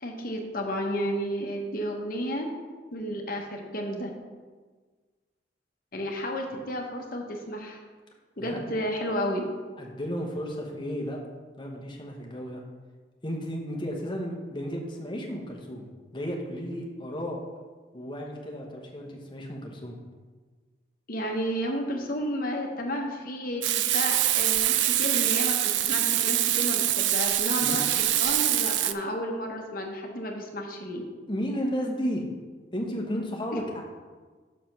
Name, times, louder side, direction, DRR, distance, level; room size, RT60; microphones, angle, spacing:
voice 1, 0.0-2.5 2.9-4.1 5.9-7.8 8.4-9.4 21.1-31.0 33.5-33.6, equal, 50° left, 1 dB, 1.1 m, -32 dB
voice 2, 9.8-11.2 11.6-12.6 13.2-15.9 16.1-17.4 17.9-20.0 27.6-27.8 31.3-32.2 32.7-33.8, equal, 25° left, 0 dB, 1.1 m, -33 dB
Frying (food), 23.6-28.9, right 13 dB, 75° right, 0.4 m, -24 dB
6.3 x 5.0 x 5.8 m, 1.4 s
head